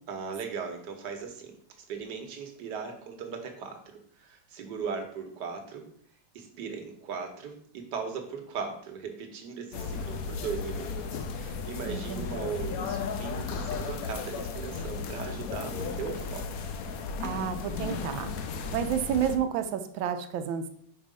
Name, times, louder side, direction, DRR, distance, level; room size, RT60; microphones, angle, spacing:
voice 1, 0.1-5.9 6.3-16.5, right 6 dB, 60° right, 5 dB, 1.6 m, -38 dB
sound 1, 9.7-19.4, left 5 dB, 70° left, 0.8 m, -35 dB
voice 2, 11.8-12.2 17.2-18.3 18.7-20.7, right 8 dB, 80° right, 8 dB, 1.4 m, -30 dB
5.5 x 4.5 x 5.0 m, 0.63 s
omnidirectional pair, 2.2 m